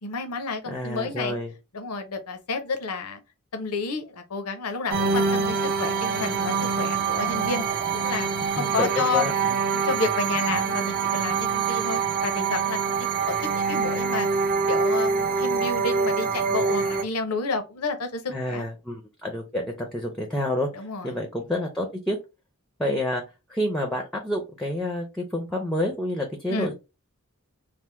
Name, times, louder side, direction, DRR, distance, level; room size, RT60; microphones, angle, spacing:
voice 1, 0.0-1.4 1.7-3.2 3.5-7.6 7.9-9.3 9.7-12.8 13.1-14.3 14.7-18.6 20.7-21.1 26.5-26.7, left 3 dB, 90° left, 0.7 m, -30 dB
voice 2, 0.7-1.5 8.6-9.6 18.3-20.7 21.0-22.2 22.8-23.2 23.5-26.7, left 1 dB, 5° left, 0.5 m, -28 dB
sound 1, 4.9-17.0, right 5 dB, 40° right, 0.5 m, -25 dB
3.3 x 2.0 x 3.0 m
head